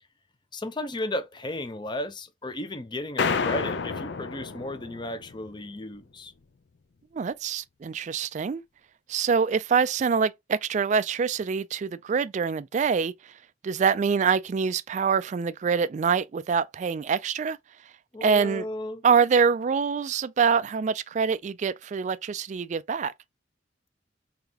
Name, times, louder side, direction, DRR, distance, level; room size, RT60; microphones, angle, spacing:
voice 1, 0.5-6.3 18.1-19.0, left 1 dB, 25° left, 0.6 m, -34 dB
sound 1, 3.2-5.6, left 5 dB, 70° left, 0.5 m, -30 dB
voice 2, 7.1-8.6 9.1-13.1 13.6-17.6 18.2-18.7 19.0-23.1, right 6 dB, 40° right, 0.3 m, -25 dB
3.9 x 3.6 x 2.8 m
head